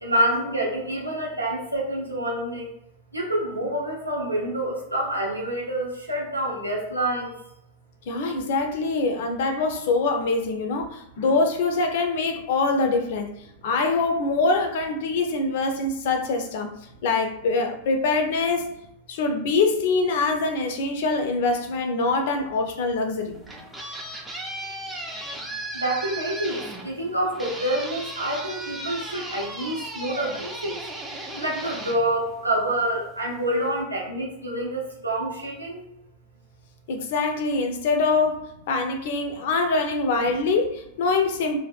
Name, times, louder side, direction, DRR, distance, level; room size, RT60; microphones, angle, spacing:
voice 1, 0.0-2.7 3.1-7.3 25.7-30.8 31.3-35.8, right 1 dB, 85° right, -3 dB, 0.7 m, -27 dB
voice 2, 8.1-13.3 13.6-16.7 17.0-18.7 19.1-23.4 36.9-41.6, left 3 dB, 55° left, 5 dB, 0.4 m, -24 dB
sound 1, 23.2-32.9, right 2 dB, 10° right, 0.4 m, -36 dB
2.6 x 2.1 x 2.4 m, 0.80 s
figure-of-eight pair, 90°, 0 cm